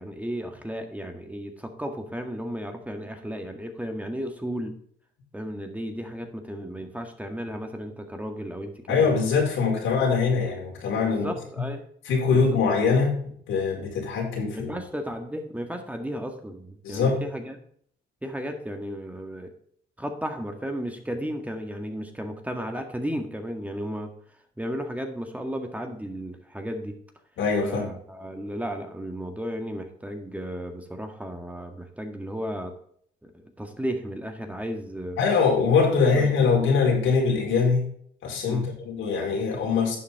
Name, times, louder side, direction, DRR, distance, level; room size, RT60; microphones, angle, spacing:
voice 1, 0.0-4.7 5.3-9.1 11.0-11.8 12.3-12.4 14.5-17.6 18.2-19.5 20.0-24.1 24.6-26.9 27.6-32.7 33.2-35.2 36.0-36.7 38.5-38.7, equal, 5° right, 4 dB, 1.8 m, -34 dB
voice 2, 8.9-11.3 12.0-13.2 13.5-14.7 16.8-17.2 27.4-27.8 35.2-37.9 38.2-40.0, left 5 dB, 85° left, -1 dB, 4.7 m, -23 dB
11.5 x 7.4 x 3.6 m, 0.62 s
cardioid pair, 90°, 20 cm